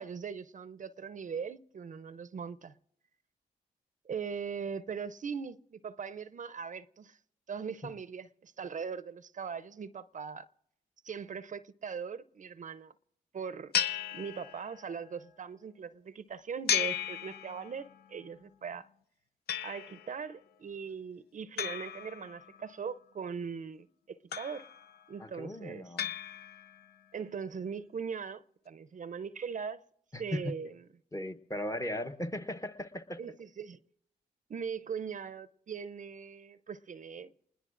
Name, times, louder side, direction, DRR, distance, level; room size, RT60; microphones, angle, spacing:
voice 1, 0.0-2.7 4.0-7.2 7.5-10.5 11.0-12.9 13.3-13.7 14.1-18.9 19.6-24.7 25.1-25.9 27.1-29.8 30.2-30.8 33.2-33.8 34.5-37.3, right 6 dB, 50° right, 0.6 m, -40 dB
sound 1, 13.7-15.0 16.7-18.0 19.5-20.2 21.6-22.7 24.3-25.0 26.0-26.9, left 9 dB, 75° left, 0.5 m, -35 dB
voice 2, 25.2-26.1 30.1-30.5 31.1-33.2, left 1 dB, 20° left, 0.9 m, -37 dB
28.0 x 20.5 x 2.5 m
cardioid pair, 60°, 17 cm